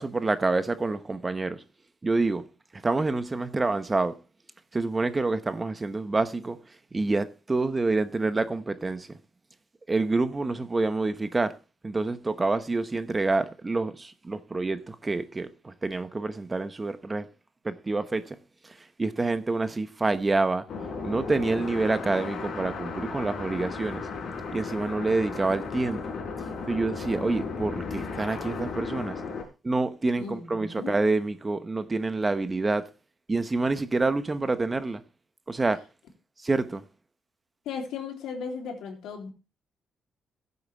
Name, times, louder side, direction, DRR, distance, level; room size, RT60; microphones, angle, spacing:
voice 1, 0.0-1.6 2.0-2.4 2.7-4.2 4.7-6.6 6.9-9.1 9.9-11.5 11.8-17.3 17.6-18.4 18.6-20.6 21.0-24.1 24.5-26.1 26.7-29.2 29.6-32.9 33.3-35.0 35.5-35.8 36.4-36.8, right 3 dB, 25° right, 0.9 m, -27 dB
sound 1, 20.7-29.4, left 4 dB, 60° left, 4.5 m, -35 dB
voice 2, 30.2-31.0 37.7-39.3, left 5 dB, 80° left, 3.4 m, -36 dB
15.0 x 8.1 x 3.5 m
cardioid pair, 90°, 0 cm